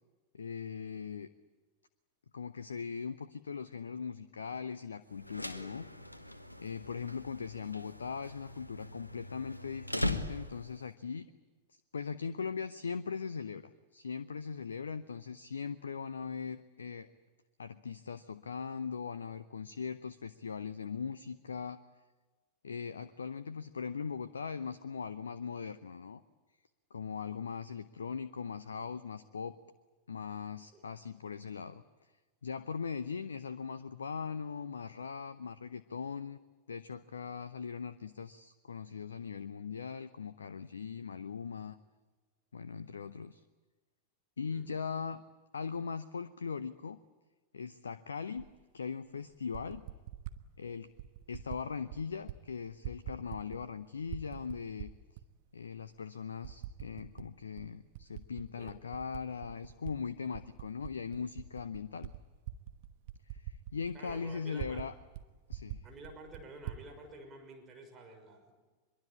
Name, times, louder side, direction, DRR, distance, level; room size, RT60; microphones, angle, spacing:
voice 1, 0.3-1.3 2.3-5.8 6.6-11.3 11.9-17.1 17.6-21.8 22.6-26.2 26.9-29.5 30.1-31.8 32.4-36.4 36.7-41.8 42.5-43.4 44.4-45.2 45.5-47.0 47.5-48.5 48.7-49.8 50.6-50.9 51.3-54.9 55.5-62.1 63.3-64.9 65.5-65.8, left 6 dB, 70° left, 15 dB, 0.7 m, -40 dB
sound 1, 5.1-10.9, left 1 dB, 85° left, 1.2 m, -40 dB
Typing, 48.4-48.5 49.3-50.4 51.0-51.6 51.9-52.4 52.7-53.7 54.0-55.2 55.8-55.9 56.4-57.3 57.6-59.9 60.3-64.9 65.1-65.2 65.5-66.8, right 12 dB, 50° right, 1.2 m, -44 dB
voice 2, 63.9-64.9 65.8-68.5, right 2 dB, 25° right, 3 dB, 6.1 m, -50 dB
23.5 x 22.5 x 8.7 m, 1.3 s
figure-of-eight pair, 90°, 0 cm